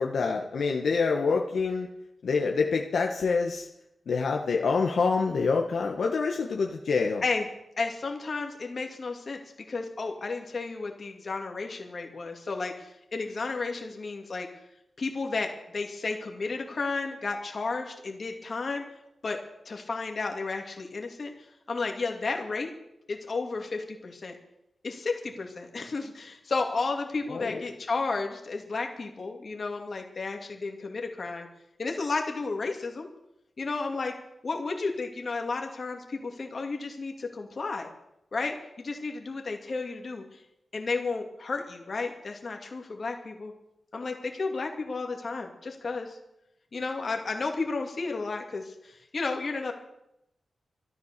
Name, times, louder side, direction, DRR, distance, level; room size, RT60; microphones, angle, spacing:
voice 1, 0.0-1.9 2.2-3.7 4.1-7.2 27.3-27.6, left 4 dB, 65° left, 1 dB, 1.4 m, -26 dB
voice 2, 7.8-9.4 9.7-14.5 15.0-18.8 19.2-19.4 19.7-21.3 21.7-22.7 23.1-24.4 24.8-31.5 31.8-33.1 33.6-34.1 34.4-37.9 38.3-40.2 40.7-43.5 43.9-46.2 46.7-49.7, left 3 dB, 40° left, 3 dB, 2.3 m, -32 dB
14.0 x 13.0 x 6.8 m, 0.82 s
wide cardioid pair, 170°, 0 cm